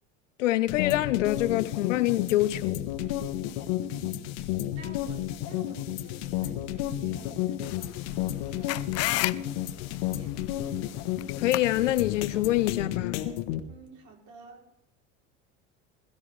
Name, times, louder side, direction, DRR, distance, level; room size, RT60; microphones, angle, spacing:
voice 1, 0.4-2.9 11.3-13.2, left 15 dB, 85° left, 0.7 m, -26 dB
sound 1, 0.7-13.6, left 12 dB, 70° left, 1.2 m, -32 dB
voice 2, 3.8-10.7 13.7-14.7, right 4 dB, 55° right, 3.3 m, -51 dB
sound 2, 7.6-12.7, left 18 dB, 45° left, 0.5 m, -35 dB
21.0 x 13.0 x 3.2 m
hypercardioid pair, 85°, 36 cm